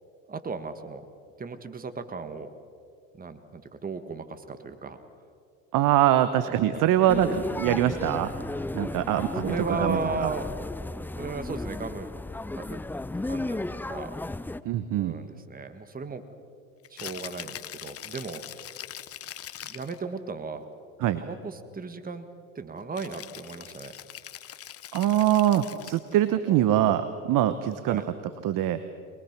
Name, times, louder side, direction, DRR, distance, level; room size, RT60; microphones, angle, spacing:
voice 1, 0.3-1.0 1.4-2.5 3.2-5.0 6.4-6.8 7.9-8.2 9.4-10.5 11.1-12.1 12.5-12.8 13.2-14.2 15.0-16.2 16.9-18.7 19.6-20.6 21.2-22.3 22.5-23.9 26.5-26.7 27.9-28.0, right 4 dB, 20° right, 10 dB, 1.6 m, -36 dB
voice 2, 5.7-8.3 8.7-9.5 9.8-10.3 14.6-15.2 21.0-21.2 24.9-28.0 28.4-28.8, right 12 dB, 55° right, 12 dB, 1.1 m, -23 dB
sound 1, 7.1-14.6, left 2 dB, 5° left, 0.5 m, -34 dB
Rattle (instrument), 16.8-20.0 23.0-26.2, left 11 dB, 35° left, 0.9 m, -42 dB
23.5 x 21.5 x 6.0 m, 2.2 s
hypercardioid pair, 85°, 39 cm